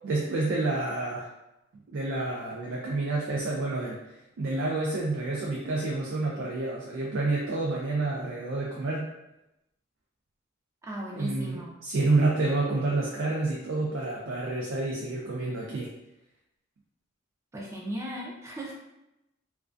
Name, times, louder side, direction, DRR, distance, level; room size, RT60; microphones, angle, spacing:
voice 1, 0.0-1.3 1.9-4.0 4.4-9.1 11.1-15.9, right 2 dB, 80° right, -4 dB, 0.4 m, -29 dB
voice 2, 10.8-11.7 17.5-18.7, equal, 15° right, -3 dB, 0.4 m, -36 dB
2.3 x 2.2 x 2.4 m, 0.90 s
head